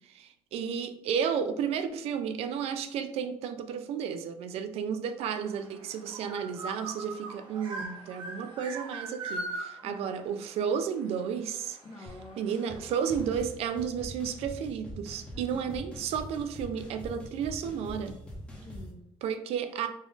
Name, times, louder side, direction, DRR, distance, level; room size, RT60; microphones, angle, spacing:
voice 1, 0.1-11.8 12.4-18.2 19.2-19.9, right 7 dB, 75° right, 10 dB, 0.4 m, -32 dB
sound 1, 5.2-13.3, right 2 dB, 50° right, 0.9 m, -41 dB
voice 2, 9.8-10.3 11.8-13.0 15.3-15.9 18.6-19.1, left 2 dB, 35° left, 0 dB, 0.5 m, -49 dB
sound 2, 12.1-12.2 12.5-12.8 13.1-18.9, equal, 10° left, 0.8 m, -43 dB
4.0 x 2.4 x 3.8 m, 0.79 s
cardioid pair, 145°, 10 cm